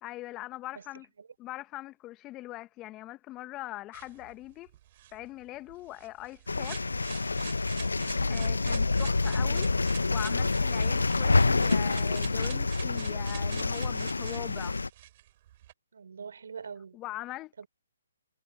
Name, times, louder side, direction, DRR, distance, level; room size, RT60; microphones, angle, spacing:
voice 1, 0.0-1.1 1.4-4.7 5.1-6.8 8.3-14.8 16.9-17.6, left 17 dB, 20° left, 1.3 m, -42 dB
sound 1, 3.9-15.7, right 14 dB, 40° right, 7.9 m, -48 dB
sound 2, 6.5-14.9, left 3 dB, 80° left, 0.9 m, -27 dB
voice 2, 8.0-8.3 15.9-17.0 17.6-17.7, right 6 dB, 65° right, 4.5 m, -44 dB
figure-of-eight pair, 135°, 0 cm